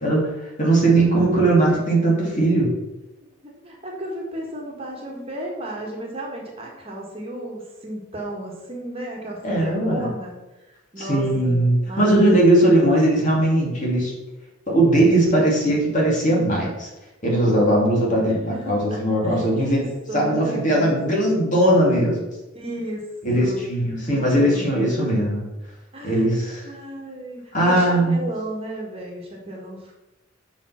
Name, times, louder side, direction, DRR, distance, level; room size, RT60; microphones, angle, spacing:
voice 1, 0.0-2.7 9.4-10.1 11.0-14.1 14.7-16.9 17.2-19.8 20.1-22.2 23.2-25.5 26.0-26.7 27.5-28.1, right 1 dB, 40° left, -3 dB, 2.5 m, -19 dB
voice 2, 3.4-12.5 18.2-21.2 22.5-23.0 23.3-23.7 24.1-24.7 25.9-26.3 26.6-30.0, right 1 dB, 30° right, -1 dB, 1.6 m, -34 dB
7.2 x 5.4 x 5.9 m, 1.0 s
head